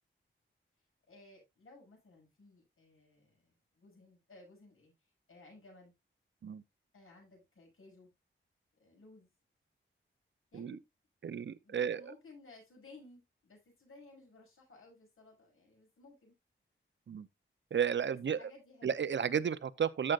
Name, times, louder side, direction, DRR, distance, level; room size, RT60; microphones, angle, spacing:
voice 1, 1.1-4.9 5.3-5.9 6.9-8.1 8.7-9.3 10.5-10.8 11.3-11.4 11.6-16.4 18.1-19.0, left 2 dB, 85° left, 6.9 m, -58 dB
voice 2, 11.2-12.0 17.1-17.3 17.7-18.4 18.8-20.1, right 8 dB, 65° right, 0.7 m, -32 dB
13.5 x 6.6 x 2.5 m
wide cardioid pair, 130°, 21 cm